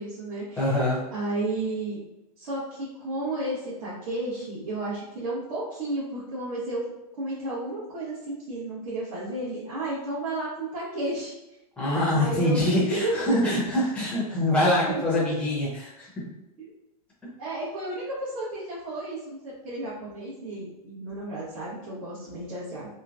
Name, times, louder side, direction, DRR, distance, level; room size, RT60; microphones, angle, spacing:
voice 1, 0.0-2.0 2.4-6.8 7.1-11.4 12.1-12.6 12.9-13.5 14.9-15.2 16.6-16.7 17.4-22.9, right 2 dB, 55° right, -9 dB, 1.1 m, -32 dB
voice 2, 0.6-1.0 11.8-16.1, left 1 dB, 5° left, -7 dB, 0.7 m, -24 dB
3.0 x 2.2 x 2.5 m, 0.92 s
supercardioid pair, 160°, 20 cm